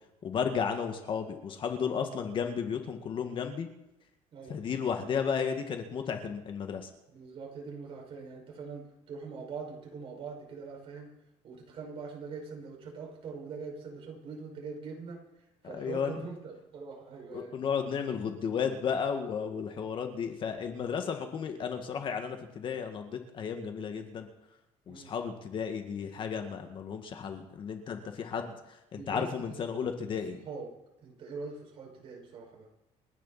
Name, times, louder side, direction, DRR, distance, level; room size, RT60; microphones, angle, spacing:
voice 1, 0.2-3.7 4.5-6.9 15.6-16.1 17.3-24.3 24.9-28.5 28.9-30.4, left 6 dB, 40° left, 5 dB, 2.0 m, -33 dB
voice 2, 7.1-11.1 11.4-17.5 18.0-18.4 24.9-25.1 27.2-27.4 28.4-28.5 28.9-29.9 30.4-30.7 31.0-32.7, right 5 dB, 45° right, -1 dB, 5.9 m, -43 dB
29.0 x 10.5 x 4.3 m, 0.93 s
cardioid pair, 135°, 13 cm